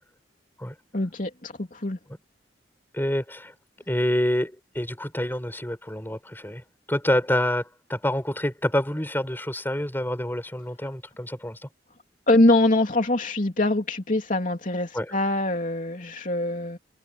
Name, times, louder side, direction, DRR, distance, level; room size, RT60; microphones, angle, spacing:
voice 1, 0.9-2.0 12.3-16.8, left 2 dB, 45° left, 3.0 m, -23 dB
voice 2, 2.9-3.5 3.9-11.7 14.9-15.1, left 1 dB, 10° left, 4.5 m, -27 dB
head